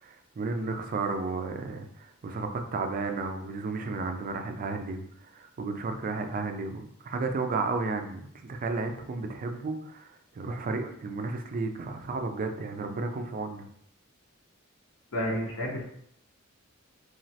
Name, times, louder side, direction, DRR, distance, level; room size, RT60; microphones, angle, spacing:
voice 1, 0.0-13.7, right 3 dB, 40° right, 6 dB, 0.3 m, -33 dB
voice 2, 15.1-15.8, equal, 75° left, -4 dB, 0.7 m, -30 dB
3.1 x 2.3 x 2.7 m, 0.68 s
head